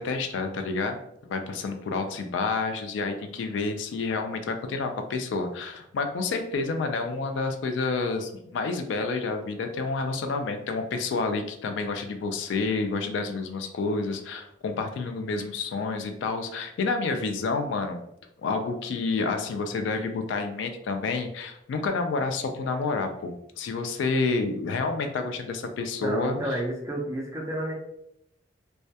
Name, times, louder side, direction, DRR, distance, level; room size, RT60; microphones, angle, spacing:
voice 1, 0.0-18.0 18.4-26.4, left 3 dB, 70° left, 7 dB, 0.3 m, -29 dB
voice 2, 26.0-27.7, right 1 dB, 15° right, 0 dB, 0.3 m, -30 dB
2.2 x 2.1 x 2.7 m, 0.79 s
head